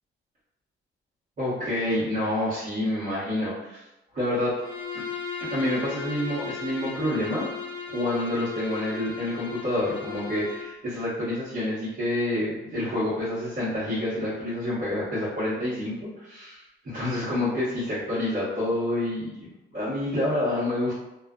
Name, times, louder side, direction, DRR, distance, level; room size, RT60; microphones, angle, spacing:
voice 1, 1.4-3.8 4.1-4.6 4.9-5.0 5.4-7.5 7.9-21.0, left 1 dB, 45° right, -11 dB, 1.1 m, -28 dB
Bowed string instrument, 4.6-10.8, left 5 dB, 75° left, 0.6 m, -36 dB
2.4 x 2.2 x 2.3 m, 0.94 s
cardioid pair, 90°, 20 cm